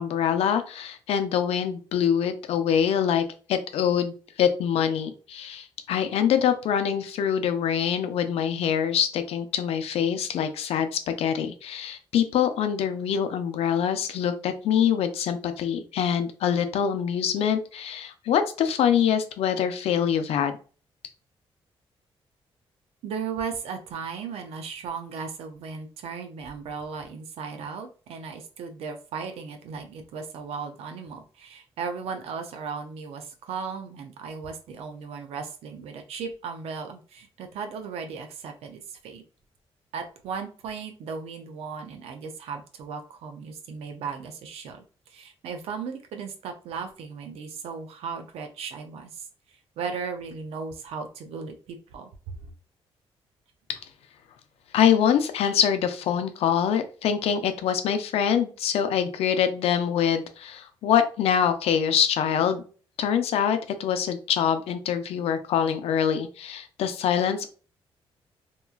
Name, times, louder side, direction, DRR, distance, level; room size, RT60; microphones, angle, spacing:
voice 1, 0.0-20.5 53.7-53.8 54.7-62.6 63.0-67.5, left 8 dB, 85° left, 9 dB, 0.4 m, -24 dB
voice 2, 23.0-39.2 39.9-52.4, right 5 dB, 85° right, 5 dB, 0.5 m, -36 dB
2.9 x 2.3 x 2.3 m, 0.38 s
cardioid pair, 110°, 10 cm